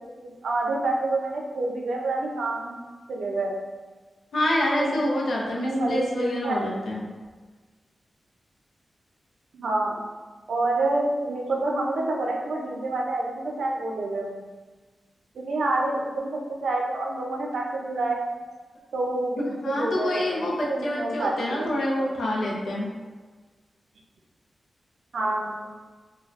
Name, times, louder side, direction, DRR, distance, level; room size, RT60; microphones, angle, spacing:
voice 1, 0.4-2.7 3.1-3.6 4.8-5.0 5.6-6.6 9.5-10.0 10.5-14.4 15.4-18.2 18.9-22.1 25.1-25.7, right 2 dB, 85° right, -1 dB, 0.5 m, -28 dB
voice 2, 4.3-7.0 19.4-22.9, left 1 dB, 90° left, -3 dB, 0.6 m, -27 dB
3.3 x 2.2 x 2.4 m, 1.3 s
wide cardioid pair, 135°, 0 cm